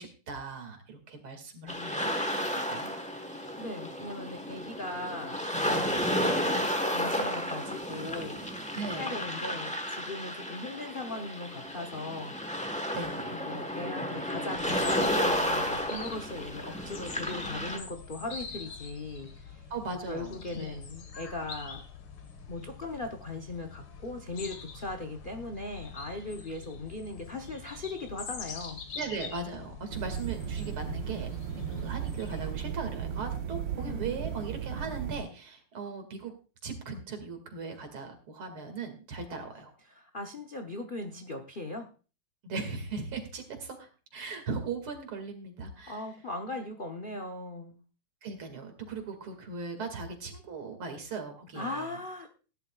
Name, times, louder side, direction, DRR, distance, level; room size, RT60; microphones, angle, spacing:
voice 1, 0.0-2.4 2.7-2.9 5.7-6.0 8.7-9.2 12.9-13.4 19.7-20.8 28.9-31.3 31.5-36.3 36.6-39.7 42.4-46.0 48.2-52.0, right 4 dB, 80° right, 6 dB, 3.0 m, -38 dB
sound 1, 1.7-17.8, equal, 5° left, 0.6 m, -32 dB
voice 2, 3.3-8.5 8.9-12.4 13.3-19.6 20.1-21.9 22.5-28.8 33.7-34.4 39.9-41.9 45.9-47.8 51.5-52.3, left 2 dB, 60° left, 5 dB, 0.5 m, -39 dB
sound 2, 14.5-32.5, left 5 dB, 80° left, 2.4 m, -45 dB
sound 3, 29.9-35.2, right 8 dB, 65° right, 1.5 m, -36 dB
18.0 x 11.0 x 2.3 m, 0.35 s
omnidirectional pair, 2.3 m